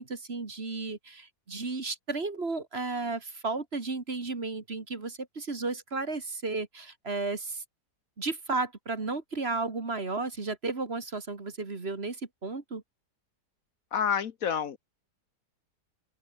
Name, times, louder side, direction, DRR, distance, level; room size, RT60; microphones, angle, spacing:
voice 1, 0.0-7.6 8.2-12.8, right 3 dB, 40° right, 2.4 m, -33 dB
voice 2, 13.9-14.8, left 7 dB, 60° left, 1.3 m, -28 dB
open air
omnidirectional pair, 1.7 m